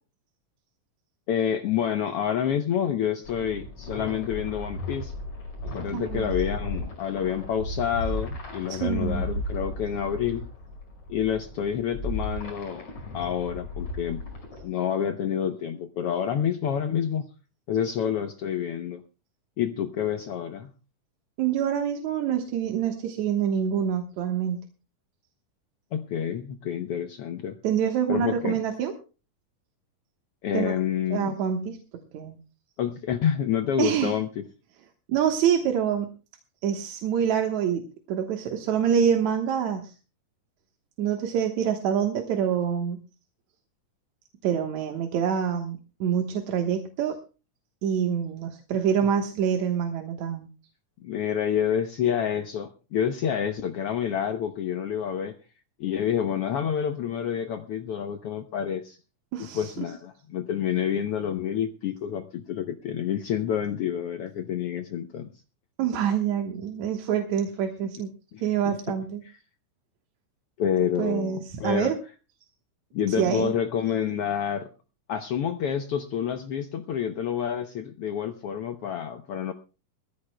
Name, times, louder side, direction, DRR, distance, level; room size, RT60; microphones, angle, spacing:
voice 1, 1.3-5.1 5.7-10.4 11.1-14.2 14.6-17.3 17.7-19.0 19.6-20.7 25.9-27.6 28.1-28.6 30.4-31.4 32.8-34.4 51.0-55.4 55.8-59.0 59.5-65.3 68.3-68.9 70.6-71.9 72.9-74.7 75.1-79.5, left 9 dB, 85° left, 8 dB, 1.3 m, -28 dB
sound 1, 3.2-14.6, left 1 dB, 45° left, 6.4 m, -35 dB
voice 2, 5.9-6.3 8.7-9.2 21.4-24.6 27.6-28.9 30.5-30.7 31.1-31.8 32.1-32.4 33.8-34.1 35.1-36.1 36.6-39.9 41.0-43.0 44.4-47.2 47.8-50.5 59.3-59.9 65.8-68.1 68.4-69.2 71.0-72.0 73.1-73.5, right 8 dB, 65° right, 4 dB, 2.4 m, -26 dB
22.0 x 15.0 x 2.2 m, 0.34 s
omnidirectional pair, 3.7 m